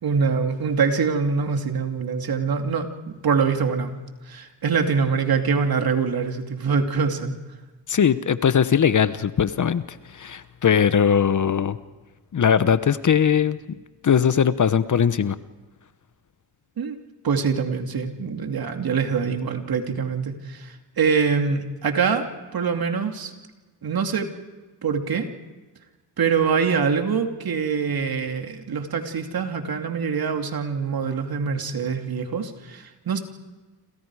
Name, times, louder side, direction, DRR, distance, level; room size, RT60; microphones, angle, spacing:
voice 1, 0.0-3.9 4.3-7.3 16.8-17.0 17.2-23.3 23.8-24.3 24.8-25.3 26.2-33.2, right 5 dB, 55° right, 5 dB, 2.7 m, -24 dB
voice 2, 7.9-11.8 12.3-13.6 14.0-15.4, left 7 dB, 45° left, 14 dB, 1.0 m, -20 dB
29.0 x 27.0 x 4.9 m, 1.3 s
cardioid pair, 75°, 43 cm